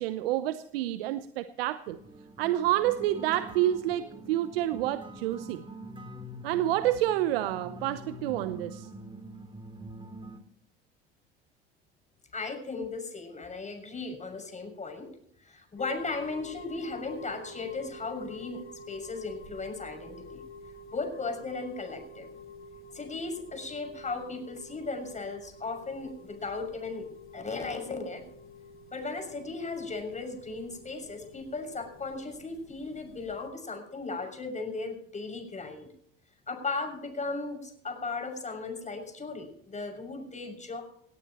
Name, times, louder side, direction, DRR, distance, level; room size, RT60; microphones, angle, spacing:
voice 1, 0.0-2.0 2.4-5.6 6.4-8.9, right 13 dB, 75° right, 13 dB, 0.9 m, -28 dB
sound 1, 1.9-10.4, right 1 dB, 15° right, 3.2 m, -45 dB
voice 2, 12.3-15.1 15.4-20.4 20.9-22.3 22.9-27.0 27.3-28.2 28.9-35.9 36.5-40.8, left 3 dB, 25° left, 4 dB, 6.6 m, -36 dB
sound 2, 15.8-33.5, left 2 dB, 45° left, 8.0 m, -48 dB
19.0 x 18.0 x 3.0 m, 0.66 s
hypercardioid pair, 70°, 30 cm